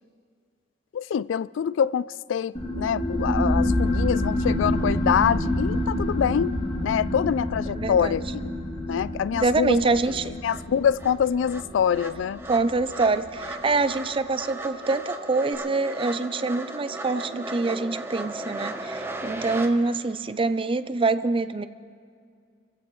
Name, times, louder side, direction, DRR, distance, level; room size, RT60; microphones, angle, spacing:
voice 1, 0.9-6.5 6.8-8.5 8.9-9.8 10.4-12.4, left 8 dB, 80° left, 0.3 m, -25 dB
sound 1, 2.5-13.7, left 1 dB, 30° left, 2.3 m, -27 dB
voice 2, 7.7-8.2 9.4-10.3 12.5-21.7, right 3 dB, 30° right, 0.5 m, -25 dB
sound 2, 9.6-9.7 10.0-19.7, right 2 dB, 15° right, 1.0 m, -37 dB
29.0 x 15.5 x 3.2 m
head